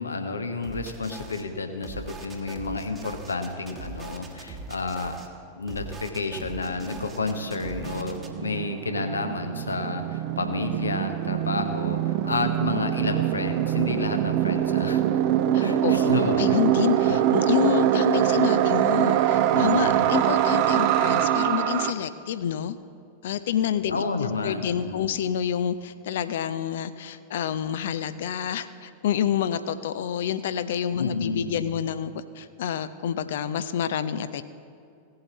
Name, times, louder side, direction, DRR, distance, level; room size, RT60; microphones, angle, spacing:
voice 1, 0.0-5.1 5.5-15.0 15.6-16.6 17.0-17.2 19.5-20.1 23.9-25.1 31.0-31.7, left 3 dB, 75° left, 7 dB, 0.9 m, -31 dB
sound 1, 0.6-1.4 1.8-5.3 5.7-8.3, right 3 dB, 20° right, 1.2 m, -41 dB
sound 2, 6.4-6.5 6.7-21.9, right 11 dB, 45° right, 0.5 m, -24 dB
voice 2, 15.5-22.8 23.2-34.4, left 9 dB, 60° left, 13 dB, 0.5 m, -28 dB
17.0 x 7.7 x 4.1 m, 2.4 s
figure-of-eight pair, 90°, 0 cm